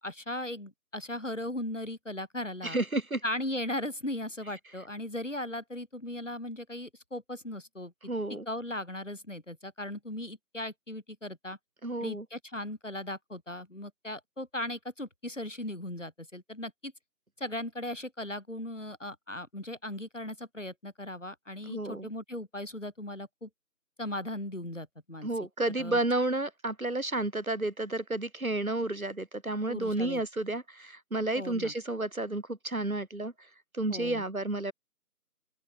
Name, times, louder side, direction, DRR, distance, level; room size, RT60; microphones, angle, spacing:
voice 1, 0.0-2.8 3.2-8.1 8.5-11.6 12.0-16.9 17.4-23.5 24.0-25.3 25.8-26.0 29.7-30.2 31.3-31.7 33.9-34.2, left 1 dB, 50° left, 3.0 m, -38 dB
voice 2, 2.6-3.2 8.0-8.5 11.8-12.3 21.7-22.1 25.2-33.3 33.7-34.7, right 2 dB, 60° right, 1.8 m, -31 dB
open air
figure-of-eight pair, 175°, 46 cm